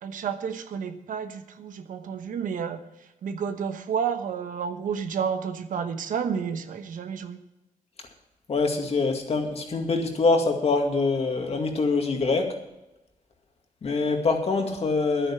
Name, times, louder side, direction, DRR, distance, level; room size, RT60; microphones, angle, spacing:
voice 1, 0.0-2.8 3.2-7.4, right 7 dB, 75° right, 8 dB, 1.1 m, -30 dB
voice 2, 8.5-12.5 13.8-15.3, left 3 dB, 45° left, 3 dB, 2.2 m, -24 dB
10.5 x 9.2 x 7.2 m, 0.94 s
cardioid pair, 90°, 14 cm